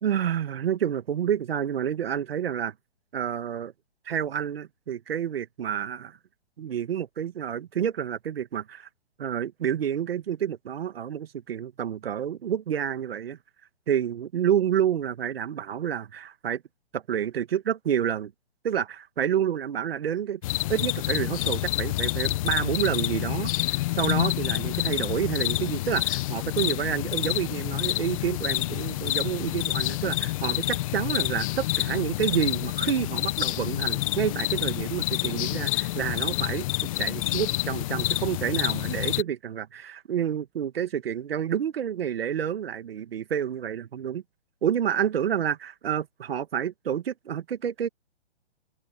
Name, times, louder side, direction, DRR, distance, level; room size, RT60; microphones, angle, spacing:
voice 1, 0.0-2.7 3.1-3.7 4.1-6.2 6.6-8.9 9.2-13.4 13.9-16.6 16.9-18.3 18.6-20.4 20.7-36.7 37.0-44.2 44.6-47.9, right 9 dB, 65° right, 2.0 m, -29 dB
sound 1, 20.4-39.2, left 17 dB, 30° left, 1.0 m, -28 dB
hypercardioid pair, 145°, 32 cm